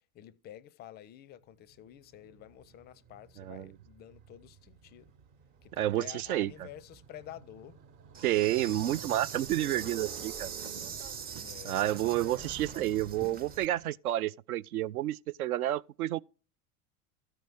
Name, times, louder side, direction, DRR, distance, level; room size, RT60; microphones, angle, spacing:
voice 1, 0.0-5.1 5.6-7.8 11.4-12.5, left 12 dB, 25° left, 0.4 m, -50 dB
Motorcycle, 1.4-13.9, right 7 dB, 40° right, 1.1 m, -51 dB
voice 2, 3.4-3.7 5.8-6.7 8.2-10.5 11.6-16.2, right 14 dB, 70° right, 0.5 m, -30 dB
Insect, 8.1-13.7, right 6 dB, 20° right, 0.6 m, -42 dB
13.0 x 5.1 x 4.5 m
figure-of-eight pair, 80°, 45 cm